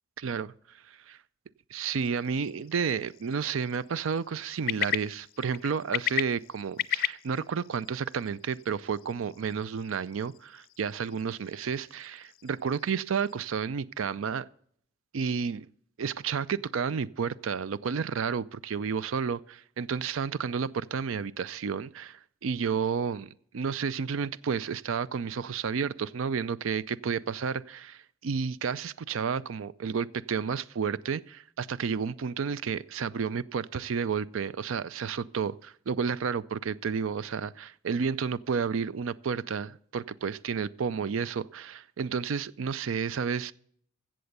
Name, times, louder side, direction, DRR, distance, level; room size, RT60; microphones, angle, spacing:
voice 1, 0.2-1.2 1.7-14.5 15.1-15.7 16.0-43.5, right 6 dB, 85° right, 0.4 m, -31 dB
sound 1, 1.8-13.5, left 13 dB, 50° left, 0.4 m, -38 dB
15.0 x 7.7 x 6.6 m
head